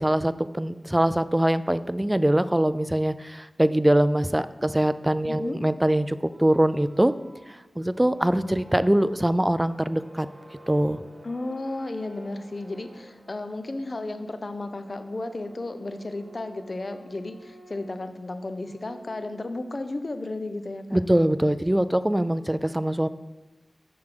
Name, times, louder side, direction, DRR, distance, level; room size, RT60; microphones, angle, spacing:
voice 1, 0.0-7.1 7.8-10.3 10.7-11.0 20.9-23.1, right 1 dB, 15° right, 14 dB, 0.3 m, -23 dB
voice 2, 5.3-5.6 11.2-21.0, left 2 dB, 55° left, 9 dB, 0.6 m, -34 dB
sound 1, 6.2-20.0, right 1 dB, 40° right, 1.1 m, -51 dB
6.7 x 3.6 x 6.0 m, 1.1 s
cardioid pair, 50°, 0 cm